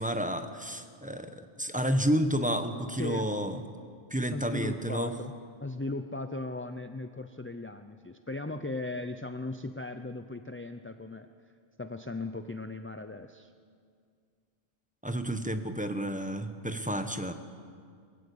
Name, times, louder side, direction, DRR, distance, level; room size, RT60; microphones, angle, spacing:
voice 1, 0.0-3.6 4.1-5.1 15.0-17.3, equal, 10° right, 7 dB, 1.0 m, -30 dB
voice 2, 2.9-3.3 4.3-5.3 5.6-11.3 11.8-13.5, left 2 dB, 20° left, 8 dB, 0.4 m, -37 dB
22.0 x 15.0 x 8.5 m, 2.2 s
omnidirectional pair, 1.1 m